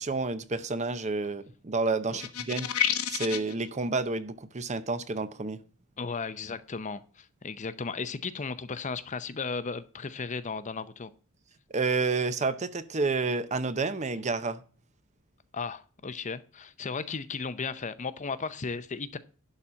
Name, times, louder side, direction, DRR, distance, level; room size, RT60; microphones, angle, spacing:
voice 1, 0.0-2.7 3.1-5.6 11.7-14.6, right 3 dB, 30° right, 0.7 m, -30 dB
sound 1, 2.2-3.5, left 10 dB, 70° left, 1.0 m, -29 dB
voice 2, 6.0-11.1 15.5-19.2, left 4 dB, 35° left, 0.6 m, -35 dB
11.5 x 4.2 x 7.4 m
head